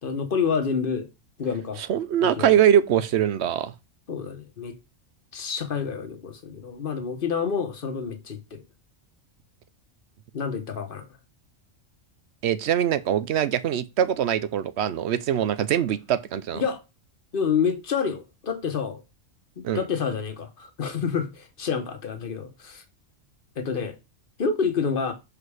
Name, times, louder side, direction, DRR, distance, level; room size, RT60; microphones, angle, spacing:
voice 1, 0.0-1.1 1.4-1.8 2.2-2.5 4.1-4.8 5.3-8.6 10.3-11.1 16.5-16.8 17.3-19.0 19.6-22.8 23.6-23.9 24.4-25.1, left 6 dB, 45° left, 1.2 m, -28 dB
voice 2, 1.9-3.7 12.4-16.6 19.6-19.8, right 10 dB, 65° right, 0.8 m, -23 dB
6.2 x 4.9 x 4.8 m
omnidirectional pair, 1.4 m